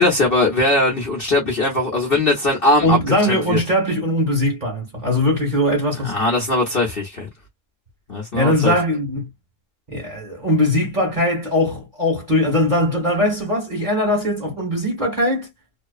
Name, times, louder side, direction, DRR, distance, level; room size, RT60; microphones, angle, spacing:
voice 1, 0.0-3.6 6.0-7.3 8.1-8.7, left 2 dB, 40° left, 1.0 m, -20 dB
voice 2, 2.8-6.2 8.3-9.3 9.9-15.5, left 1 dB, 30° right, 1.3 m, -20 dB
2.8 x 2.2 x 2.3 m
omnidirectional pair, 1.7 m